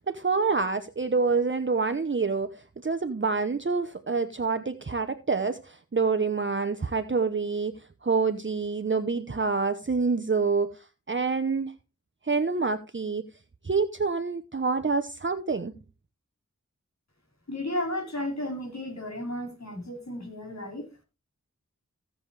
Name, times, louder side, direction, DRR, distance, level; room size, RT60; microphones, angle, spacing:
voice 1, 0.0-11.7 12.2-13.3 13.6-15.7, right 4 dB, 40° right, 0.8 m, -27 dB
voice 2, 17.5-20.9, left 1 dB, 60° left, 4.4 m, -33 dB
16.0 x 7.0 x 3.3 m
wide cardioid pair, 55°, 31 cm